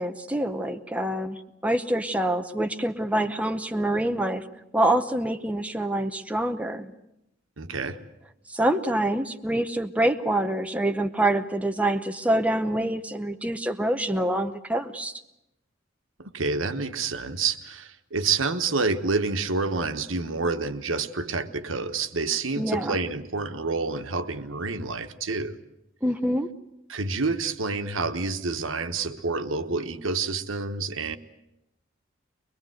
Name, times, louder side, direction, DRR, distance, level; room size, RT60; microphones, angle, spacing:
voice 1, 0.0-1.4 1.6-4.4 4.7-6.9 8.5-15.2 22.6-23.0 26.0-26.5, right 1 dB, 5° right, 6 dB, 0.8 m, -26 dB
voice 2, 7.6-8.0 16.2-25.6 26.9-31.2, right 4 dB, 90° right, 9 dB, 1.2 m, -28 dB
23.0 x 21.5 x 7.8 m, 0.86 s
head